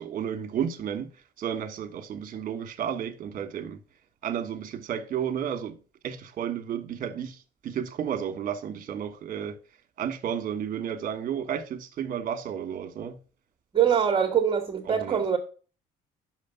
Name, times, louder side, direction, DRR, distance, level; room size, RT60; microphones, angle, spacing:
voice 1, 0.0-3.8 4.2-5.8 6.0-9.6 10.0-13.2 14.8-15.2, right 8 dB, 55° right, 1.3 m, -32 dB
voice 2, 13.7-15.4, right 8 dB, 30° right, 1.2 m, -23 dB
6.3 x 5.0 x 6.7 m
cardioid pair, 110°, 17 cm